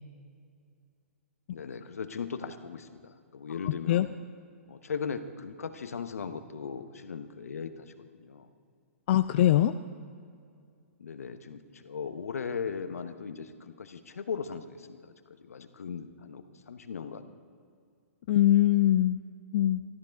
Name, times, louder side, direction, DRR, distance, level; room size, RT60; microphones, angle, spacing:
voice 1, 1.5-4.1 4.7-8.5 11.0-17.3, left 6 dB, 75° left, 10 dB, 1.0 m, -38 dB
voice 2, 3.6-4.1 9.1-9.7 18.3-19.2 19.5-19.8, left 13 dB, 50° left, 11 dB, 0.4 m, -22 dB
13.0 x 13.0 x 5.2 m, 2.2 s
figure-of-eight pair, 120°, 8 cm